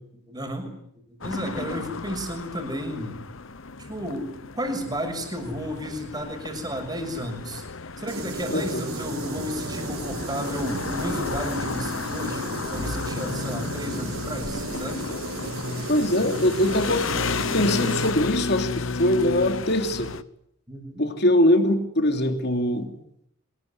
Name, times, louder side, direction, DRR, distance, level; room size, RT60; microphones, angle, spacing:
voice 1, 0.0-3.2 3.8-7.6 8.0-15.1 20.7-21.0, equal, 20° right, 5 dB, 6.5 m, -33 dB
sound 1, 1.2-20.2, left 4 dB, 70° left, 1.0 m, -33 dB
sound 2, 8.1-18.1, right 2 dB, 85° right, 4.8 m, -34 dB
voice 2, 8.5-8.8 15.9-17.1 17.5-20.1 21.0-22.9, left 1 dB, 50° left, 5 dB, 3.3 m, -22 dB
25.5 x 20.5 x 9.9 m, 0.74 s
head